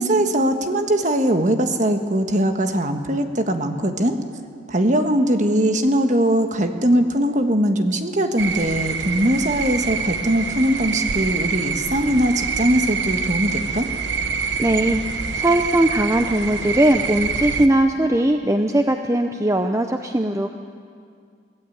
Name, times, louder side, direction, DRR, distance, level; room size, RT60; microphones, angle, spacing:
voice 1, 0.0-4.2 4.7-13.8, right 1 dB, 40° right, 6 dB, 1.4 m, -20 dB
sound 1, 8.4-17.7, right 5 dB, 65° right, 1.1 m, -26 dB
voice 2, 14.6-15.0 15.3-20.5, right 1 dB, 15° right, 6 dB, 0.6 m, -19 dB
23.5 x 17.0 x 8.7 m, 2.2 s
head